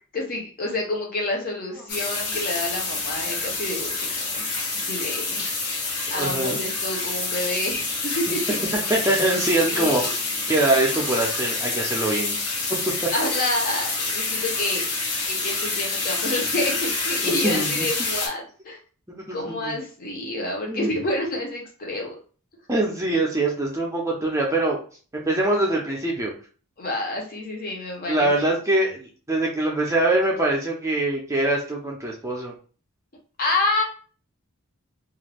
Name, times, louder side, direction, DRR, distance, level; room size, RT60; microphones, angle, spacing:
voice 1, 0.1-4.4 4.7-5.7 6.1-8.6 9.7-10.2 13.1-14.9 15.2-18.8 19.3-22.2 26.8-28.3 33.4-33.8, left 2 dB, 40° left, 0 dB, 0.7 m, -28 dB
sound 1, 1.9-18.3, left 3 dB, 90° left, 1.0 m, -27 dB
voice 2, 6.1-6.6 8.9-10.1 10.5-12.4 12.9-13.1 17.2-17.9 19.1-19.7 20.7-20.9 22.7-24.8 25.1-26.3 28.1-32.5, right 2 dB, 15° right, -2 dB, 0.5 m, -23 dB
2.4 x 2.2 x 3.3 m, 0.39 s
head